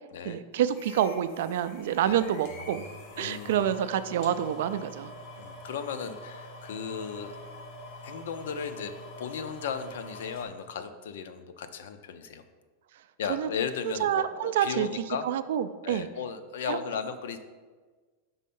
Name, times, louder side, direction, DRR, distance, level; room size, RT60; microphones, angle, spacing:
voice 1, 0.2-2.8 3.2-5.1 13.3-13.5 13.8-14.9 15.2-16.1 16.7-16.8, right 10 dB, 60° right, 12 dB, 0.3 m, -27 dB
sound 1, 0.7-10.5, left 1 dB, 40° left, 0.9 m, -45 dB
voice 2, 3.2-3.7 5.4-7.4 8.0-12.4 13.2-15.3 15.8-17.4, left 6 dB, 70° left, 9 dB, 0.5 m, -36 dB
5.5 x 4.2 x 5.4 m, 1.4 s
supercardioid pair, 175°, 0 cm